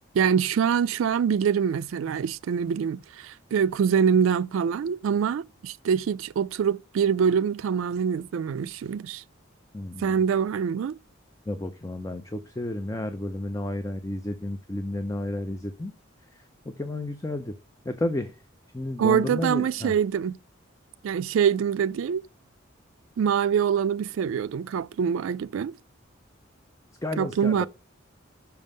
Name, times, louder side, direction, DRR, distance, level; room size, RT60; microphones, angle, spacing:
voice 1, 0.1-9.2 10.0-11.0 19.0-20.4 21.0-22.2 23.2-25.7 27.2-27.7, right 7 dB, 80° right, 0.3 m, -24 dB
voice 2, 9.7-10.2 11.5-15.9 16.3-16.5 16.8-17.6 17.8-18.4 18.7-19.9 27.0-27.7, left 1 dB, 15° left, 0.5 m, -32 dB
5.8 x 5.4 x 5.3 m
head